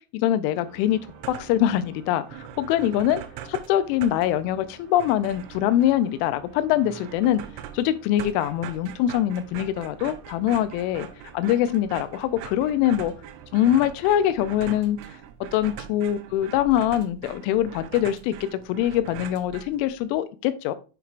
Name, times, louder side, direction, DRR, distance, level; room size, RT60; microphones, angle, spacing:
voice 1, 0.1-1.0 1.3-3.2 3.5-7.4 7.7-11.1 11.3-13.1 13.5-15.0 15.5-20.7, left 12 dB, 85° left, 3.0 m, -23 dB
sound 1, 0.5-14.9, right 6 dB, 70° right, 3.4 m, -50 dB
sound 2, 1.0-1.7 2.0-2.1 2.3-20.1, right 10 dB, 85° right, 3.1 m, -42 dB
10.0 x 4.7 x 2.5 m
omnidirectional pair, 5.6 m